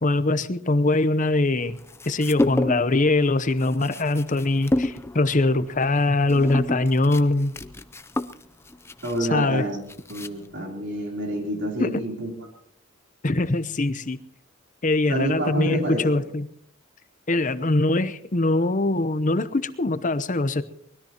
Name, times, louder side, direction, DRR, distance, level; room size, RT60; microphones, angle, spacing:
voice 1, 0.0-1.8 2.1-7.5 9.3-9.6 11.8-12.0 13.2-14.2 14.8-16.5 17.3-20.6, left 2 dB, 40° left, 13 dB, 0.8 m, -22 dB
sound 1, 1.8-3.0 3.3-10.6, left 1 dB, 15° left, 0.6 m, -29 dB
voice 2, 9.0-9.8 10.1-12.3 15.1-16.1, right 1 dB, 60° right, 1 dB, 3.6 m, -28 dB
24.0 x 20.5 x 3.0 m, 0.66 s
head